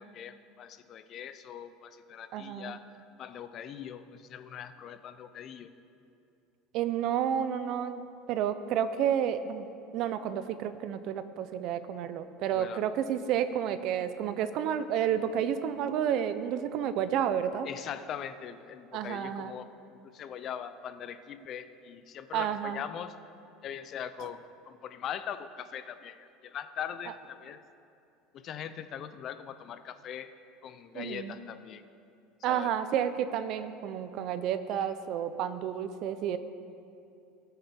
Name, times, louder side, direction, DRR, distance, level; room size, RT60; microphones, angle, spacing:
voice 1, 0.0-2.8 3.2-5.7 12.5-12.8 17.6-19.7 20.0-23.1 23.6-27.6 28.3-30.3 30.6-31.8 32.5-32.7, left 9 dB, 35° left, 11 dB, 0.5 m, -41 dB
voice 2, 2.3-2.8 6.7-9.7 9.9-17.7 18.9-19.5 22.3-22.8 30.9-31.4 32.4-36.4, right 9 dB, 45° right, 11 dB, 0.6 m, -31 dB
19.0 x 6.7 x 4.3 m, 2.6 s
cardioid pair, 155°, 0 cm